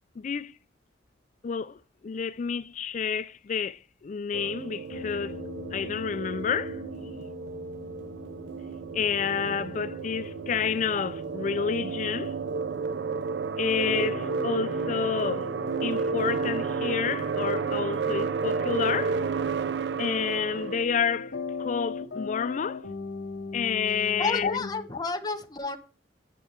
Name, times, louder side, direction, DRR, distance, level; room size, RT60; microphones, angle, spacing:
voice 1, 0.2-0.5 1.4-5.4 5.7-6.8 8.9-12.3 13.6-15.5 15.8-19.2 20.0-22.8 23.5-24.7, left 6 dB, 40° left, 0.3 m, -29 dB
sound 1, 4.3-20.8, right 5 dB, 70° right, 0.4 m, -31 dB
sound 2, 4.9-24.8, left 4 dB, 70° left, 0.9 m, -41 dB
voice 2, 24.2-25.8, left 4 dB, 20° left, 1.0 m, -31 dB
8.4 x 5.3 x 5.9 m
head